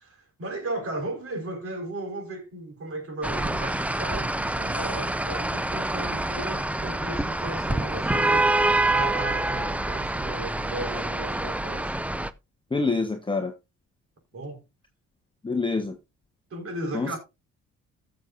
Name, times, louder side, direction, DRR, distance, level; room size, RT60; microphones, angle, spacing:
voice 1, 0.0-12.0 14.3-14.6 16.5-17.2, right 2 dB, 50° right, 4.5 m, -36 dB
sound 1, 3.2-12.3, right 2 dB, 5° right, 0.5 m, -26 dB
voice 2, 12.7-13.5 15.4-16.0 16.9-17.2, left 3 dB, 15° left, 1.1 m, -26 dB
14.5 x 7.1 x 2.5 m
cardioid pair, 90°, 30 cm